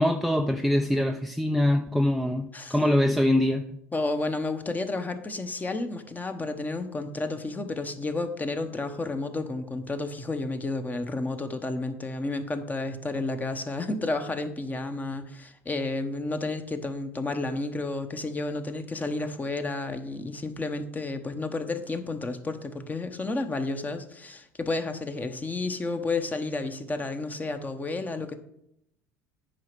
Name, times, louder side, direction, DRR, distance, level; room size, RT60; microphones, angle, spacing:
voice 1, 0.0-3.6, left 1 dB, ahead, 0.6 m, -23 dB
voice 2, 3.9-28.4, left 2 dB, 20° left, 1.2 m, -31 dB
9.2 x 4.9 x 6.2 m
hypercardioid pair, 70°, 8 cm